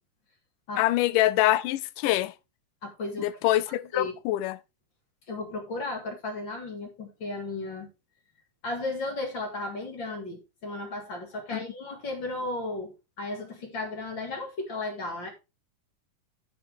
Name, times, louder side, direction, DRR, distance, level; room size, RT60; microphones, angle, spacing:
voice 1, 0.8-2.3 3.2-4.6 11.5-11.6, left 15 dB, 90° left, 2.2 m, -25 dB
voice 2, 2.8-3.3 3.7-4.1 5.3-7.9 8.6-15.3, left 2 dB, 40° left, 2.3 m, -35 dB
9.0 x 7.1 x 3.4 m
omnidirectional pair, 3.6 m